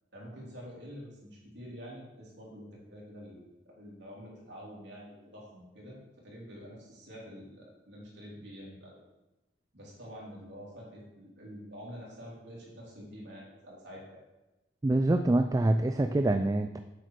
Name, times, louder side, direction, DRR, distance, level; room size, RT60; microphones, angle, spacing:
voice 1, 0.1-9.0 9.7-14.2, equal, 75° right, -4 dB, 3.4 m, -47 dB
voice 2, 14.8-16.8, right 2 dB, 20° right, 8 dB, 0.3 m, -25 dB
8.1 x 6.6 x 4.6 m, 1.0 s
head